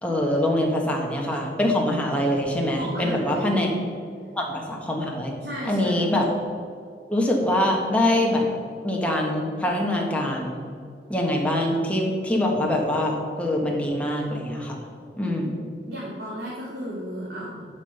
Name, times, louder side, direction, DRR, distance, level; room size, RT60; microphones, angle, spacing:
voice 1, 0.0-3.7 4.3-5.3 5.6-6.2 7.1-8.5 8.8-10.6 11.1-14.8 15.2-15.5, left 1 dB, 10° left, -1 dB, 1.5 m, -24 dB
voice 2, 2.8-3.6 5.4-6.0 15.9-17.6, equal, 65° right, -6 dB, 2.1 m, -33 dB
11.5 x 5.4 x 5.5 m, 2.2 s
head